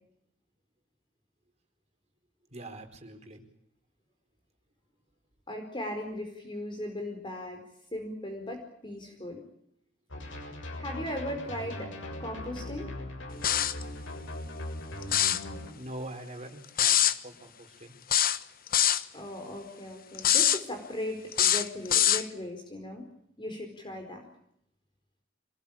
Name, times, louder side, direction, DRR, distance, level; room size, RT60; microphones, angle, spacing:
voice 1, 2.5-3.4 15.7-17.0 17.2-18.0, right 1 dB, 35° right, 5 dB, 4.5 m, -43 dB
voice 2, 5.5-7.6 7.9-9.4 10.8-11.9 12.2-12.9 19.1-23.1 23.4-24.3, left 1 dB, 25° left, 5 dB, 4.6 m, -38 dB
sound 1, 10.1-15.7, left 1 dB, 75° left, 6.6 m, -40 dB
sound 2, 13.4-13.8 15.0-15.4 16.8-17.2 18.1-19.0 20.2-20.6 21.3-22.2, left 11 dB, 50° left, 1.1 m, -23 dB
26.0 x 19.5 x 8.8 m, 0.73 s
head